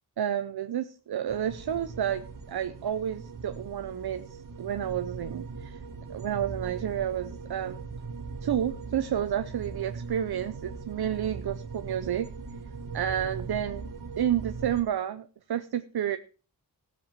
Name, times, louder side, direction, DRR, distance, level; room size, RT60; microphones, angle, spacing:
voice 1, 0.2-5.8 6.1-7.8 8.4-12.3 12.9-13.9 14.2-16.2, right 10 dB, 80° right, 10 dB, 0.7 m, -30 dB
sound 1, 1.3-14.8, right 4 dB, 55° right, 1.7 m, -40 dB
16.0 x 7.6 x 4.6 m, 0.37 s
wide cardioid pair, 115°, 37 cm